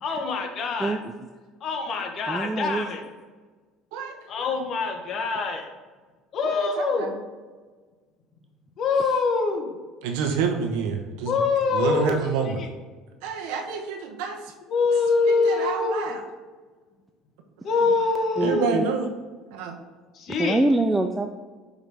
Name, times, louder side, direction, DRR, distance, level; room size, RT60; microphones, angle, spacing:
voice 1, 0.0-1.0 1.6-3.0 4.3-5.7 6.3-7.1 8.8-9.7 11.3-12.2 12.5-12.6 14.7-16.0 17.6-18.8 20.2-20.6, left 4 dB, 45° left, 4 dB, 1.0 m, -24 dB
voice 2, 0.8-1.3 2.3-2.9 9.0-9.2 18.4-18.8 20.4-21.3, right 2 dB, 10° right, 5 dB, 0.3 m, -25 dB
voice 3, 6.4-7.2 10.0-11.4 11.7-12.6 13.2-14.4 15.2-16.2 18.4-19.1 19.5-19.7, right 5 dB, 85° right, 4 dB, 0.9 m, -28 dB
5.6 x 4.9 x 3.5 m, 1.4 s
cardioid pair, 130°, 0 cm